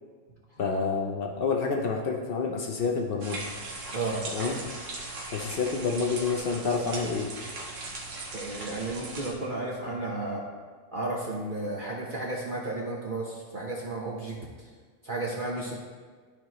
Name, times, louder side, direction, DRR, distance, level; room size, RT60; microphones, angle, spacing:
voice 1, 0.6-3.4 4.3-4.6 5.3-7.3, left 5 dB, 85° left, 2 dB, 0.5 m, -28 dB
sound 1, 3.2-9.3, right 2 dB, 70° right, 1.6 m, -38 dB
voice 2, 3.9-4.2 8.3-10.4 10.9-14.4 15.0-15.7, right 2 dB, 40° right, -4 dB, 0.9 m, -33 dB
12.0 x 4.6 x 3.0 m, 1.5 s
omnidirectional pair, 1.8 m